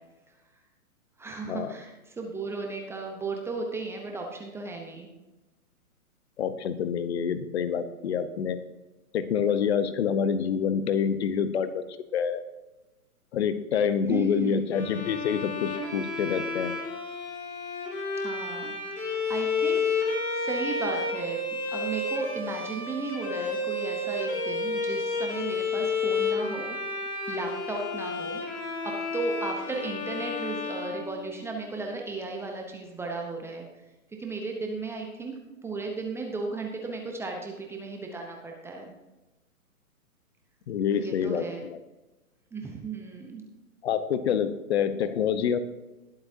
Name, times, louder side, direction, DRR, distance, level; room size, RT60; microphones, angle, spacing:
voice 1, 1.2-5.1 14.1-14.7 18.1-21.4 21.7-26.8 27.3-33.7 34.2-35.3 35.6-38.9 40.9-41.6 42.5-43.4, right 3 dB, 5° right, 1 dB, 0.8 m, -35 dB
voice 2, 6.4-8.6 9.1-11.8 12.1-12.4 13.3-16.8 40.7-41.8 43.8-45.6, left 7 dB, 45° left, 12 dB, 1.0 m, -27 dB
Bowed string instrument, 14.7-31.7, left 3 dB, 20° left, 2.4 m, -31 dB
20.5 x 8.0 x 2.8 m, 1.1 s
hypercardioid pair, 135°, 44 cm